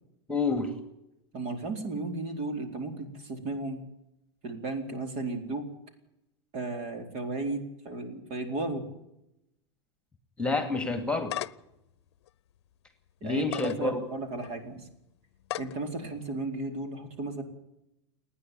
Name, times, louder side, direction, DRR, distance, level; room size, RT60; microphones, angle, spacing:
voice 1, 0.3-0.8 10.4-11.4 13.2-14.0, left 3 dB, 5° left, 8 dB, 2.4 m, -28 dB
voice 2, 1.3-3.8 4.4-5.7 6.5-8.9 13.2-14.9 15.6-17.4, right 2 dB, 50° right, 6 dB, 4.3 m, -34 dB
sound 1, 10.9-11.7 12.3-12.4 13.4-13.8 14.4-14.5 15.4-15.8, left 14 dB, 80° left, 0.7 m, -35 dB
29.0 x 10.0 x 9.4 m, 0.86 s
supercardioid pair, 120°, 14 cm